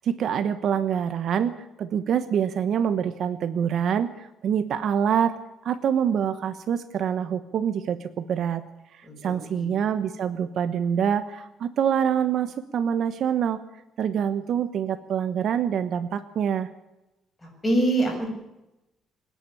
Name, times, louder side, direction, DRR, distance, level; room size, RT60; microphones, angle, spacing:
voice 1, 0.0-1.5 1.8-5.3 5.6-8.6 8.9-13.6 14.0-16.7, right 8 dB, 50° right, 12 dB, 1.1 m, -25 dB
voice 2, 9.0-9.7 17.4-18.3, right 2 dB, 15° left, 1 dB, 7.5 m, -25 dB
25.5 x 10.5 x 9.9 m, 0.96 s
cardioid pair, 140°, 0 cm